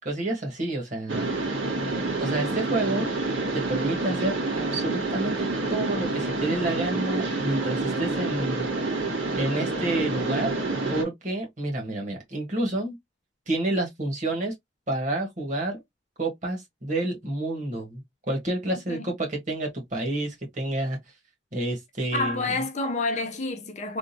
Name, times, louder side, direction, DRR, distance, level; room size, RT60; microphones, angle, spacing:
voice 1, 0.0-1.3 2.2-3.1 3.5-8.7 9.3-10.5 10.9-13.0 13.5-14.5 14.9-15.8 16.2-21.0 21.5-22.5, right 2 dB, 40° right, 1.5 m, -29 dB
Mechanisms, 1.1-11.0, right 3 dB, 80° right, 1.6 m, -28 dB
voice 2, 22.1-24.0, left 2 dB, 35° left, 0.6 m, -28 dB
3.5 x 2.5 x 2.7 m
head